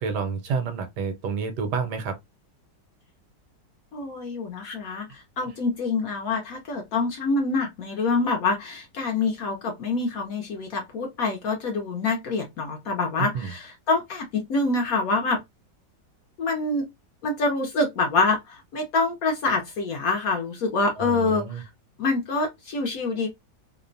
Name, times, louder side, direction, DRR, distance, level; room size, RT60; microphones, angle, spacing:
voice 1, 0.0-2.2 13.2-13.5 21.0-21.6, right 5 dB, 75° right, 1.2 m, -29 dB
voice 2, 3.9-15.4 16.4-16.9 17.2-21.7 22.0-23.3, left 3 dB, 70° left, 0.9 m, -26 dB
2.9 x 2.1 x 2.4 m
omnidirectional pair, 1.9 m